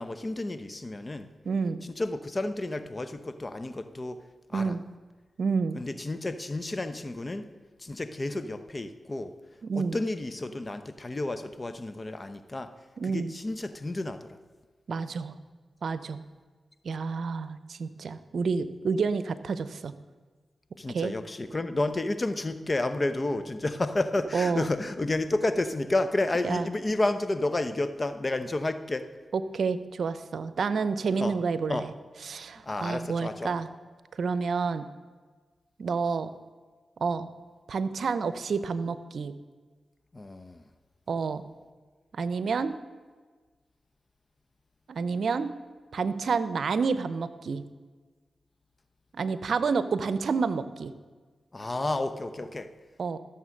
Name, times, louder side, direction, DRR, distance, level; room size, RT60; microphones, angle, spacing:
voice 1, 0.0-1.3 1.8-4.2 4.5-4.8 5.7-7.5 7.8-9.3 9.7-12.7 13.0-14.4 20.8-29.1 31.2-31.3 31.7-31.9 32.6-33.5 40.1-40.6 51.5-52.7, left 2 dB, 35° left, 11 dB, 0.9 m, -31 dB
voice 2, 1.4-1.8 4.5-4.8 5.4-5.8 9.6-10.0 13.0-13.3 14.9-15.3 15.8-16.2 16.8-19.9 20.9-21.2 24.3-24.7 26.4-26.7 29.3-31.9 32.2-33.7 34.1-34.9 35.8-36.3 37.0-37.3 37.7-39.4 41.1-41.4 42.1-42.7 44.9-45.5 45.9-47.6 49.1-50.9 53.0-53.2, right 5 dB, 75° right, 14 dB, 0.7 m, -29 dB
14.5 x 7.2 x 6.5 m, 1.4 s
cardioid pair, 45°, 0 cm